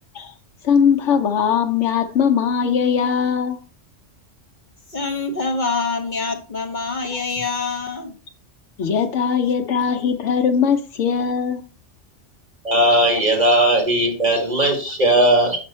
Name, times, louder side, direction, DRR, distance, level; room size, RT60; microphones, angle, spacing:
voice 1, 0.6-3.6 7.1-7.2 8.8-11.6, left 7 dB, 80° left, 1.1 m, -20 dB
voice 2, 4.9-8.1, left 3 dB, 40° left, 1.2 m, -25 dB
voice 3, 12.6-15.6, right 1 dB, 35° right, 2.2 m, -17 dB
6.2 x 5.8 x 4.2 m
omnidirectional pair, 1.2 m